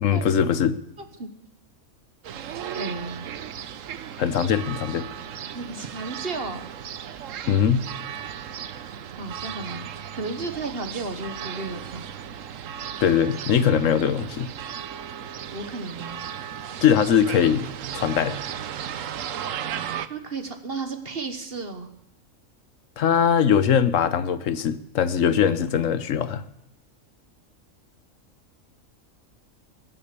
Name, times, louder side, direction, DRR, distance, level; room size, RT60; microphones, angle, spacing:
voice 1, 0.0-0.8 4.2-5.1 7.5-7.9 13.0-14.5 16.8-17.7 17.9-18.4 23.0-26.4, left 8 dB, 70° left, 13 dB, 1.2 m, -21 dB
sound 1, 2.2-20.1, right 9 dB, 70° right, 1.1 m, -36 dB
voice 2, 2.7-3.3 5.5-6.6 9.1-9.9 10.1-12.1 12.3-12.4 15.5-16.2 20.1-21.9, right 3 dB, 45° right, 7 dB, 1.5 m, -33 dB
22.5 x 7.7 x 6.8 m, 0.84 s
omnidirectional pair, 1.4 m